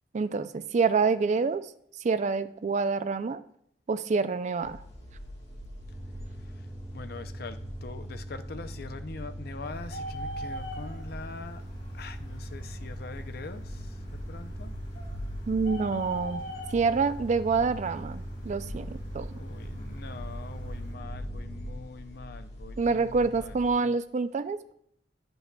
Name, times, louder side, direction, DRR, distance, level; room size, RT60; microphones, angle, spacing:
voice 1, 0.1-1.7 2.0-3.4 3.9-4.8 15.5-16.4 16.7-19.3 22.8-24.7, right 4 dB, 40° right, 12 dB, 0.4 m, -27 dB
sound 1, 4.6-23.7, equal, 40° left, 1.8 m, -43 dB
sound 2, 5.8-21.9, right 1 dB, 5° right, 1.2 m, -42 dB
voice 2, 6.9-11.6 11.9-14.8 19.3-23.9, left 4 dB, 60° left, 10 dB, 0.5 m, -43 dB
Bird, 9.7-20.9, right 1 dB, 75° left, 2.4 m, -45 dB
10.5 x 7.9 x 2.2 m, 0.70 s
head